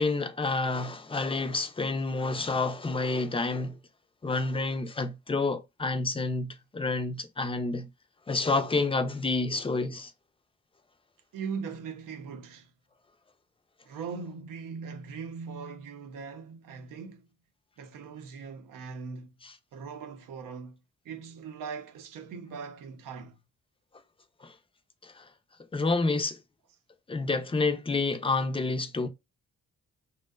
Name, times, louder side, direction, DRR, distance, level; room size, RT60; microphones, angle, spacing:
voice 1, 0.0-3.8 4.2-7.9 8.3-10.1 19.4-19.5 24.4-24.5 25.0-25.3 25.7-26.4 27.1-29.1, left 3 dB, 20° left, 0.4 m, -29 dB
voice 2, 11.3-12.7 13.8-17.3 17.8-19.3 19.7-20.8 21.0-23.4, right 5 dB, 85° right, 0.6 m, -40 dB
2.6 x 2.2 x 2.2 m
cardioid pair, 90°, 32 cm